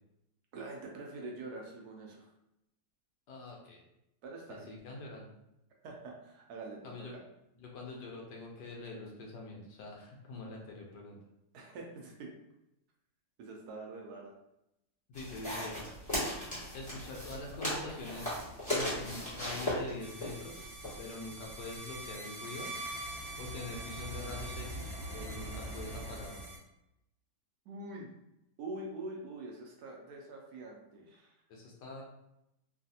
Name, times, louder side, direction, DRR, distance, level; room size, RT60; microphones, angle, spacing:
voice 1, 0.5-2.2 4.2-4.7 5.8-7.2 11.5-12.3 13.4-14.3 27.7-28.1 28.6-31.3, right 2 dB, 70° right, 0 dB, 1.0 m, -45 dB
voice 2, 3.3-3.8 4.5-5.2 6.8-7.1 7.6-11.2 15.1-15.9 16.7-18.4 18.7-20.6 21.0-22.7 23.4-26.5 31.5-32.0, left 3 dB, 75° left, -1 dB, 1.2 m, -44 dB
sound 1, 15.1-22.1, left 1 dB, 5° left, 1.2 m, -38 dB
sound 2, 20.0-26.6, right 2 dB, 45° right, 0.9 m, -45 dB
sound 3, 21.9-26.5, right 1 dB, 50° left, 1.4 m, -44 dB
3.2 x 2.4 x 2.7 m, 0.85 s
omnidirectional pair, 1.9 m